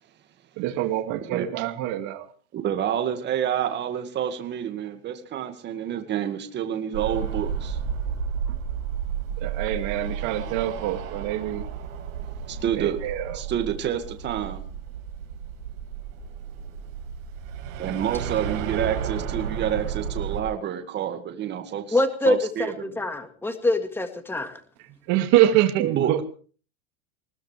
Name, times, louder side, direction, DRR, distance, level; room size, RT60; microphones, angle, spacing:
voice 1, 0.6-2.2 9.4-11.7 12.8-13.4 25.1-26.2, right 13 dB, 45° right, 7 dB, 2.3 m, -24 dB
voice 2, 2.5-7.8 12.5-13.0 13.3-14.6 17.8-22.0 22.3-23.1 25.8-26.2, right 9 dB, 25° right, 7 dB, 2.1 m, -28 dB
sound 1, 6.9-20.4, right 7 dB, 75° right, 5.2 m, -32 dB
voice 3, 21.9-24.6, left 2 dB, 5° left, 8 dB, 1.8 m, -25 dB
20.5 x 19.5 x 3.4 m, 0.39 s
supercardioid pair, 150°, 41 cm